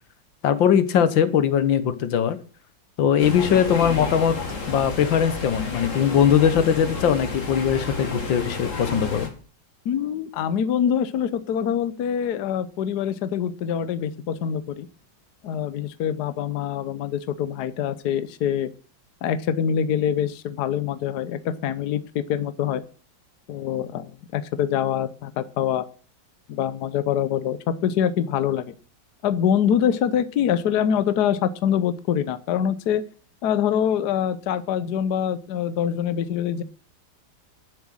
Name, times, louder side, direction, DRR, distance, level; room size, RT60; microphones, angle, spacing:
voice 1, 0.4-2.4 3.0-4.4 4.7-9.3, left 8 dB, 85° left, 13 dB, 1.8 m, -20 dB
sound 1, 3.2-9.3, left 3 dB, 40° left, 2.5 m, -31 dB
voice 2, 9.8-14.9 15.4-18.7 19.2-22.8 23.5-25.8 26.5-28.7 29.2-33.0 33.4-36.6, left 9 dB, 65° left, 13 dB, 1.3 m, -24 dB
10.5 x 7.7 x 7.6 m, 0.39 s
omnidirectional pair, 2.0 m